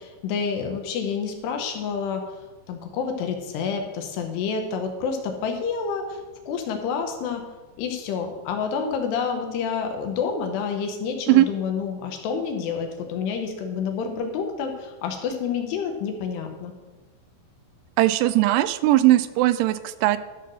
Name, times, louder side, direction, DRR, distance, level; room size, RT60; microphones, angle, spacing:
voice 1, 0.0-2.2 2.7-6.2 6.5-7.4 7.8-16.7, left 6 dB, 85° left, 5 dB, 3.2 m, -28 dB
voice 2, 18.0-20.2, right 15 dB, 85° right, 13 dB, 2.6 m, -19 dB
12.5 x 4.6 x 6.2 m, 1.2 s
omnidirectional pair, 4.7 m